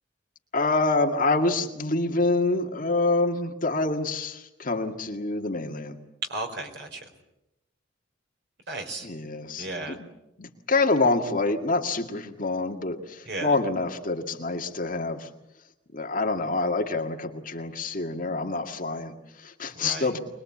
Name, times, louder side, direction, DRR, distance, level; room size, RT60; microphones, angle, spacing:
voice 1, 0.5-6.0 9.0-10.1 10.4-15.3 15.9-20.2, left 3 dB, 45° left, 3 dB, 1.9 m, -26 dB
voice 2, 6.3-7.0 8.7-9.1 9.6-10.0 13.3-13.5 19.8-20.1, right 2 dB, 60° right, 4 dB, 4.4 m, -34 dB
25.0 x 21.5 x 8.5 m, 0.92 s
head